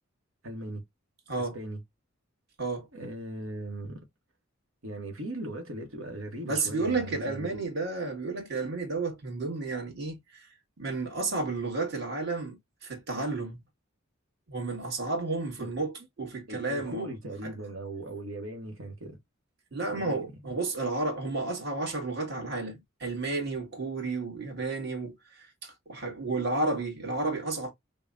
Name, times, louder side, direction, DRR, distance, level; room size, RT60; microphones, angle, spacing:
voice 1, 0.4-0.8 1.4-1.8 2.9-4.0 4.8-7.6 15.6-15.7 16.5-19.2 19.9-20.1, right 1 dB, 85° right, 1.1 m, -38 dB
voice 2, 6.4-10.5 10.8-13.6 14.5-17.1 17.4-17.5 19.7-27.7, right 3 dB, 55° right, 1.7 m, -32 dB
5.3 x 2.2 x 2.4 m
head